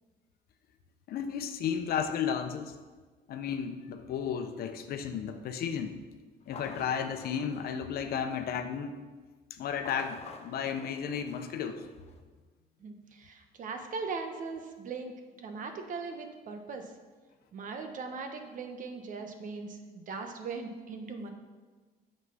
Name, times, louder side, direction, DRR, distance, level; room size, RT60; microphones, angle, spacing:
voice 1, 1.1-2.7 3.3-6.0 6.5-9.0 9.5-11.9, left 7 dB, 65° left, 7 dB, 0.9 m, -33 dB
sound 1, 6.4-8.6 9.7-12.2, left 5 dB, 40° left, 0.9 m, -49 dB
voice 2, 12.8-15.1 15.4-16.9 17.5-21.3, right 4 dB, 50° right, 5 dB, 1.2 m, -39 dB
8.2 x 6.5 x 5.6 m, 1.4 s
cardioid pair, 110°, 17 cm